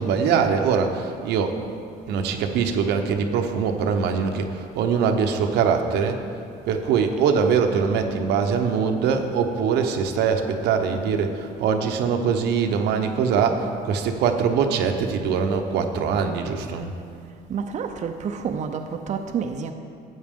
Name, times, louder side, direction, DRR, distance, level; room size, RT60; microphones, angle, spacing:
voice 1, 0.0-1.6 2.1-6.2 6.6-16.9, right 6 dB, 85° right, 5 dB, 0.9 m, -22 dB
voice 2, 17.5-19.7, right 6 dB, 45° right, 5 dB, 0.6 m, -29 dB
12.5 x 8.0 x 3.7 m, 2.3 s
cardioid pair, 110°, 17 cm